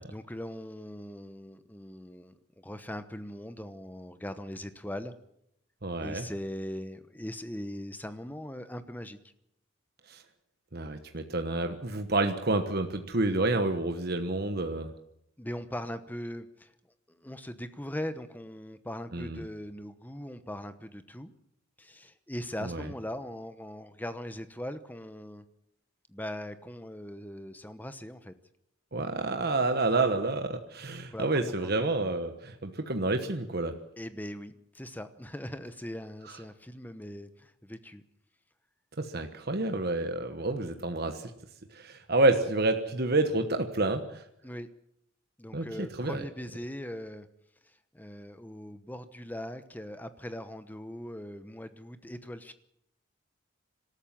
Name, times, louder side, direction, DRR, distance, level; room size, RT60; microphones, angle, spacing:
voice 1, 0.1-5.1 6.0-9.2 15.4-16.7 17.1-21.3 21.8-25.4 26.1-28.3 31.1-31.7 34.0-38.0 44.4-44.7 45.4-47.3 47.6-52.5, equal, 10° left, 11 dB, 0.9 m, -40 dB
voice 2, 5.8-6.2 10.1-10.2 10.7-14.9 19.1-19.4 22.6-22.9 28.9-33.7 39.0-41.3 41.7-44.2 45.5-46.2, right 2 dB, 50° right, 6 dB, 1.3 m, -29 dB
26.0 x 13.5 x 7.5 m, 0.78 s
head